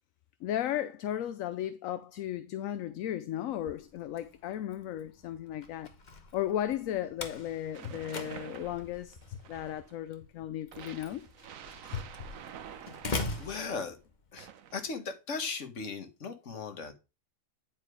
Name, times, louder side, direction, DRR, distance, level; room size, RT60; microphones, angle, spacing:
voice 1, 0.4-5.9 6.3-11.3 11.9-12.0, left 11 dB, 80° left, 1.0 m, -35 dB
Slam, 3.5-14.4, left 3 dB, 40° left, 1.1 m, -43 dB
sound 1, 7.7-10.0 10.7-13.9 14.4-15.0, right 9 dB, 80° right, 1.2 m, -48 dB
voice 2, 11.7-12.0 13.4-14.0 14.3-16.9, left 4 dB, 65° left, 1.6 m, -38 dB
9.6 x 4.4 x 4.9 m
omnidirectional pair, 1.4 m